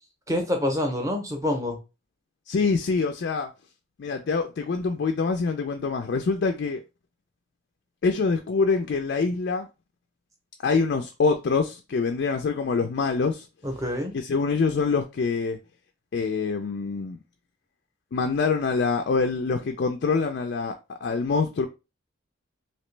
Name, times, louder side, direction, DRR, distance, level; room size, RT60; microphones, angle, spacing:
voice 1, 0.3-1.8 13.6-14.1, left 1 dB, 15° right, 0.7 m, -26 dB
voice 2, 2.5-3.5 4.0-6.8 8.0-9.7 10.6-13.5 14.1-15.6 16.1-17.2 18.1-21.7, left 4 dB, 50° left, 0.3 m, -25 dB
3.0 x 2.8 x 3.2 m
head